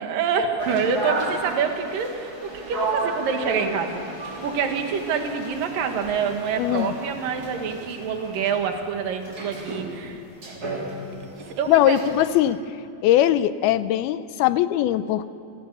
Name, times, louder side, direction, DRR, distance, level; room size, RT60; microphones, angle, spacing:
voice 1, 0.0-4.0 4.4-10.6 11.6-12.1, right 6 dB, 70° right, 5 dB, 3.2 m, -26 dB
sound 1, 0.6-12.4, right 2 dB, 25° right, 3.5 m, -33 dB
voice 2, 6.6-6.9 11.7-12.6 13.0-15.3, left 13 dB, 85° left, 13 dB, 2.6 m, -20 dB
27.5 x 18.5 x 6.9 m, 2.4 s
omnidirectional pair, 4.3 m